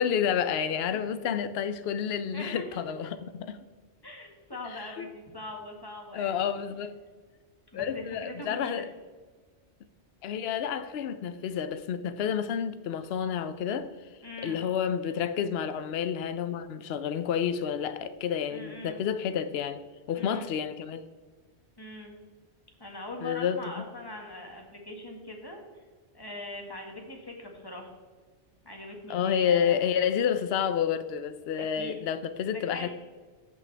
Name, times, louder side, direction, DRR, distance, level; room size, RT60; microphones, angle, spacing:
voice 1, 0.0-3.6 4.7-5.1 6.1-7.0 7.7-8.9 10.2-13.9 14.4-19.8 20.1-21.0 23.2-23.8 29.1-32.9, left 8 dB, 70° left, 0.8 m, -29 dB
voice 2, 2.3-2.6 4.0-6.4 7.7-8.9 14.2-14.6 18.5-19.0 20.2-20.4 21.8-22.1 22.8-25.6 26.1-27.9 28.6-29.8 31.6-32.0 32.5-32.9, left 1 dB, 20° left, 1.8 m, -41 dB
14.5 x 8.5 x 3.4 m
omnidirectional pair, 1.1 m